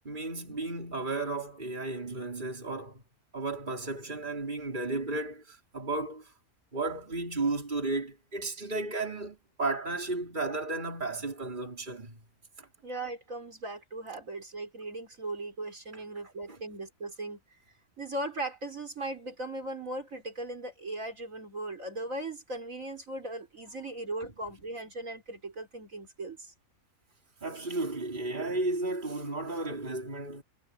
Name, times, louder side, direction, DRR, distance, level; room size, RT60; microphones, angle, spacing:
voice 1, 0.0-3.0 3.3-6.3 6.7-12.2 12.6-12.7 16.5-16.6 27.4-30.4, right 2 dB, 30° right, 4.1 m, -34 dB
voice 2, 12.8-17.4 18.0-26.5, right 2 dB, 60° right, 4.5 m, -38 dB
omnidirectional pair, 1.6 m